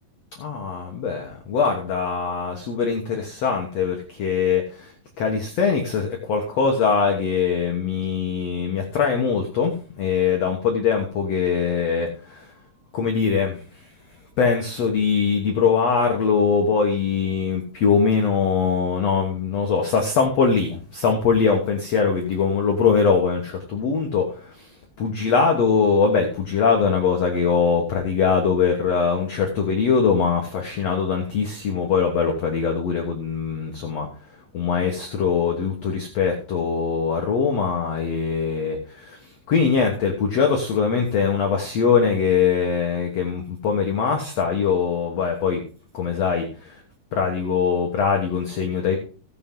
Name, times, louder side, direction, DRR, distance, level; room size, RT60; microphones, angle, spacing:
voice 1, 0.4-4.9 5.2-12.5 12.9-13.6 14.4-24.7 25.0-34.1 34.5-39.2 39.5-45.6 45.9-46.8 47.1-49.0, left 5 dB, 55° left, 2 dB, 2.0 m, -22 dB
17.0 x 7.1 x 3.8 m, 0.39 s
omnidirectional pair, 4.4 m